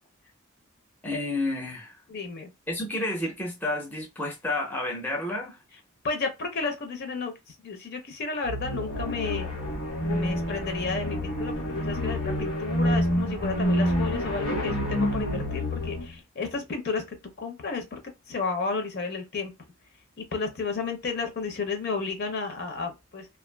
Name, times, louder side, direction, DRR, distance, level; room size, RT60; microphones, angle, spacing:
voice 1, 1.0-2.0 2.7-5.6, left 2 dB, 10° left, 0.5 m, -30 dB
voice 2, 2.1-2.5 6.0-9.5 10.0-18.0 18.3-19.5 20.2-23.3, left 4 dB, 50° left, 0.6 m, -32 dB
sound 1, 8.4-16.1, equal, 85° left, 1.3 m, -28 dB
2.4 x 2.4 x 2.2 m
head